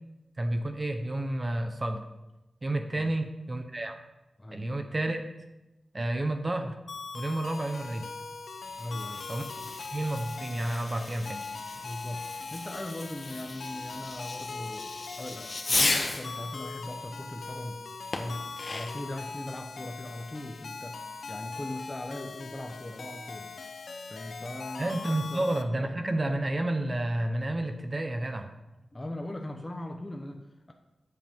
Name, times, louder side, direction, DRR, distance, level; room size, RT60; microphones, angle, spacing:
voice 1, 0.4-2.0 2.6-4.0 4.5-5.3 5.9-6.8 7.1-8.0 9.3-9.5 9.9-11.4 24.8-28.5, right 1 dB, 30° right, 6 dB, 0.9 m, -30 dB
voice 2, 4.4-4.7 8.8-9.3 9.6-9.7 11.8-17.8 18.2-23.5 24.1-24.9 25.3-25.5 28.9-30.7, left 1 dB, 20° left, 2 dB, 0.9 m, -39 dB
sound 1, 6.9-25.6, left 4 dB, 85° left, 0.8 m, -41 dB
Fireworks, 8.7-16.4 18.1-19.1, left 2 dB, 40° left, 1.2 m, -35 dB
14.0 x 7.8 x 3.7 m, 1.0 s
wide cardioid pair, 105°, 0 cm